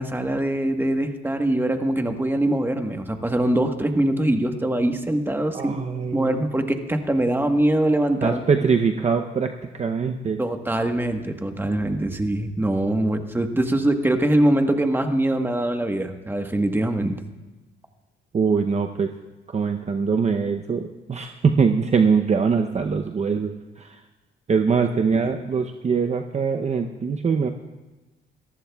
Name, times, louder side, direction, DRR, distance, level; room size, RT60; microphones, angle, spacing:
voice 1, 0.0-5.8 6.1-8.4 10.4-17.2 25.2-25.3, right 1 dB, 10° right, 6 dB, 1.2 m, -23 dB
voice 2, 5.5-6.4 8.2-10.4 18.3-19.1 19.5-24.0 24.5-27.5, right 5 dB, 35° right, 5 dB, 0.7 m, -23 dB
27.5 x 14.5 x 2.3 m, 1.1 s
cardioid pair, 90°, 20 cm